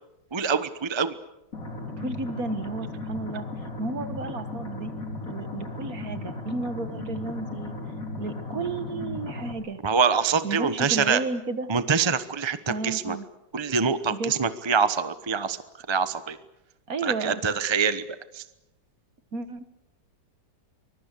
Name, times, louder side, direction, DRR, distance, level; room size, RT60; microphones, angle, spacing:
voice 1, 0.3-1.1 9.8-11.2 11.7-13.2 13.5-15.6 15.9-16.4 17.0-18.0 18.3-18.4, right 6 dB, 25° right, 12 dB, 0.6 m, -25 dB
sound 1, 1.5-9.5, left 2 dB, 45° left, 3.7 m, -36 dB
voice 2, 2.0-4.9 5.2-7.8 8.2-9.8 10.4-11.7 12.7-13.3 14.1-14.3 16.9-17.4 19.3-19.7, right 3 dB, 50° right, 11 dB, 1.9 m, -32 dB
24.5 x 21.5 x 8.3 m, 0.90 s
omnidirectional pair, 2.1 m